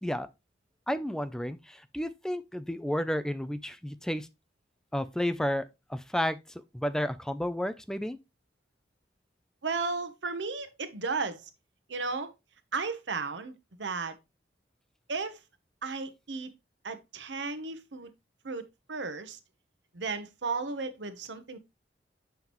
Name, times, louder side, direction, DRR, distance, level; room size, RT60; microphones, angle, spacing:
voice 1, 0.9-4.3 4.9-6.4 6.7-8.2, equal, 5° left, 0.4 m, -31 dB
voice 2, 9.6-11.5 11.9-12.3 12.7-14.2 15.1-15.4 15.8-16.5 16.8-18.1 18.4-19.4 19.9-21.6, right 4 dB, 90° right, 0.9 m, -34 dB
7.1 x 5.7 x 3.0 m
head